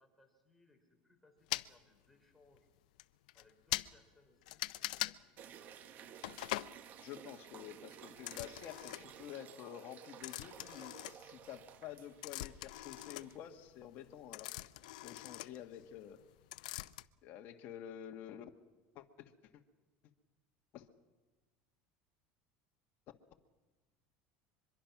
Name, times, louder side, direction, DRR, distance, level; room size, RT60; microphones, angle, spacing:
voice 1, 0.0-2.7 3.3-5.1 5.5-6.2, left 2 dB, 5° left, 1 dB, 4.8 m, -69 dB
sound 1, 1.5-1.7 2.5-2.6 3.0-3.1 3.3-3.4 3.7-3.9 4.5-5.2 6.2-6.7 8.2-9.2 10.2-11.6 11.9-16.2 16.5-17.0, left 18 dB, 90° left, 0.6 m, -42 dB
sound 2, 5.4-13.4, right 9 dB, 45° right, 1.4 m, -55 dB
voice 2, 7.0-14.7 15.0-16.2 17.2-18.5 18.9-19.3 20.7-20.9, left 10 dB, 50° left, 4 dB, 1.6 m, -49 dB
24.0 x 22.5 x 6.0 m, 1.3 s
supercardioid pair, 130°, 4 cm